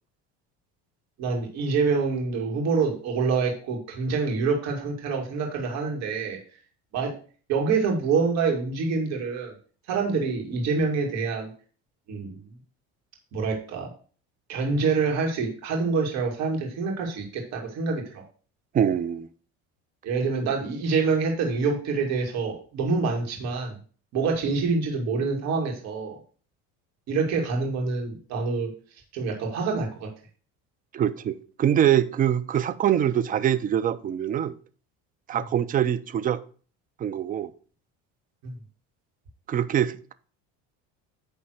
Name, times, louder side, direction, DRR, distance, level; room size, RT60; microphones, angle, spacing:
voice 1, 1.2-6.4 6.9-7.1 7.5-9.5 9.9-11.5 12.1-12.4 13.3-13.9 14.5-18.2 20.0-23.8 24.1-26.2 27.1-28.7 29.1-30.1 38.4-38.5, right 4 dB, 55° right, 2.4 m, -26 dB
voice 2, 18.7-19.3 30.9-34.6 35.3-36.4 37.0-37.5 39.5-40.1, right 10 dB, 25° right, 0.5 m, -24 dB
9.7 x 3.4 x 6.4 m
cardioid pair, 135°, 33 cm